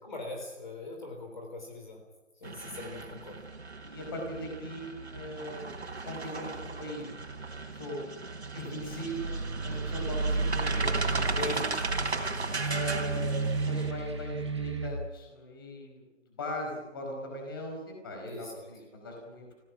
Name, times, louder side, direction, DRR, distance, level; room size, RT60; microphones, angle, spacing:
voice 1, 0.0-2.0 2.4-3.4 11.3-12.8 18.2-18.7, left 2 dB, 40° left, 3 dB, 3.8 m, -42 dB
sound 1, 2.4-13.9, right 3 dB, 60° right, 3.8 m, -37 dB
voice 2, 3.8-5.8 6.0-7.3 7.7-8.2 8.5-11.6 12.7-19.5, left 1 dB, 20° left, 1 dB, 4.7 m, -39 dB
sound 2, 8.8-14.9, right 4 dB, 20° right, 1.4 m, -32 dB
29.5 x 17.5 x 6.1 m, 1.2 s
hypercardioid pair, 180°, 37 cm